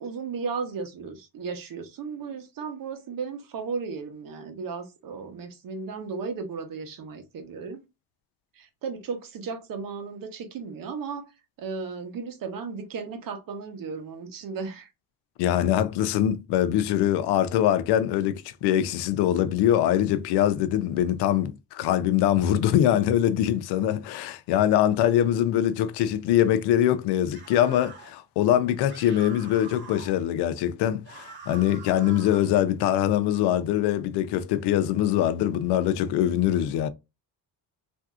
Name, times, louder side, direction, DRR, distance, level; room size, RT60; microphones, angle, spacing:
voice 1, 0.0-7.8 8.5-11.3 11.6-14.9, right 5 dB, 60° right, 1.0 m, -35 dB
voice 2, 15.4-36.9, left 11 dB, 90° left, 0.5 m, -23 dB
sound 1, 27.3-28.1 28.9-30.2 31.0-32.5, right 5 dB, 30° right, 1.6 m, -44 dB
3.4 x 2.6 x 2.4 m
cardioid pair, 110°, 39 cm